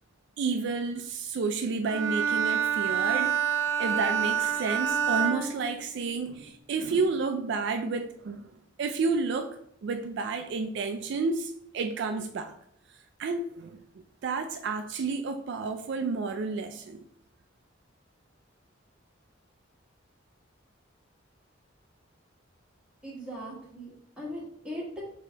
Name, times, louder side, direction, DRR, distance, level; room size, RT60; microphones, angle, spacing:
voice 1, 0.4-3.4 3.8-8.5 8.8-12.5 13.2-13.8 14.2-17.0, right 4 dB, 60° right, 0.3 m, -31 dB
Bowed string instrument, 1.8-6.3, right 8 dB, 85° right, 0.8 m, -28 dB
voice 2, 23.0-25.0, equal, 5° right, 1.4 m, -39 dB
4.9 x 2.8 x 3.4 m
head